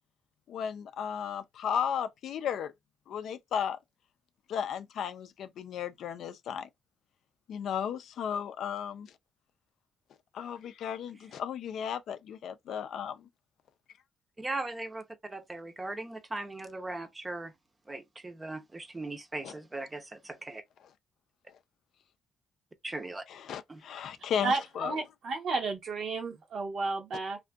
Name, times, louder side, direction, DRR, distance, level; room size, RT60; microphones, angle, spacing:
voice 1, 0.5-2.7 3.1-3.8 4.5-6.7 7.5-9.1 10.3-13.3 19.4-19.5 23.3-24.9, left 8 dB, 70° left, 0.3 m, -35 dB
voice 2, 14.4-15.0 15.3-17.5 17.9-20.6 22.8-23.2 23.7-23.8, right 2 dB, 20° right, 0.6 m, -38 dB
voice 3, 24.4-27.4, right 3 dB, 65° right, 0.8 m, -32 dB
2.5 x 2.5 x 2.2 m
cardioid pair, 90°, 0 cm